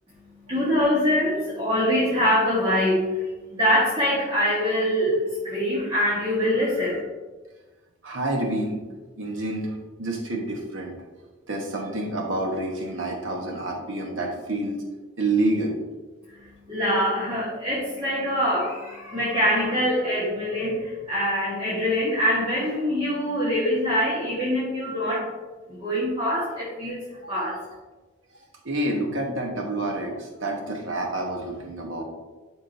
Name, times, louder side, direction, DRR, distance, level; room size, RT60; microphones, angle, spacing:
voice 1, 0.5-7.0 16.7-25.3 25.7-27.6, equal, 25° right, -8 dB, 1.4 m, -24 dB
voice 2, 8.0-8.8 9.2-11.0 11.5-14.8 15.2-15.8 27.2-27.4 28.6-32.0, right 2 dB, 75° right, 1 dB, 1.1 m, -28 dB
11.0 x 3.7 x 2.6 m, 1.2 s
head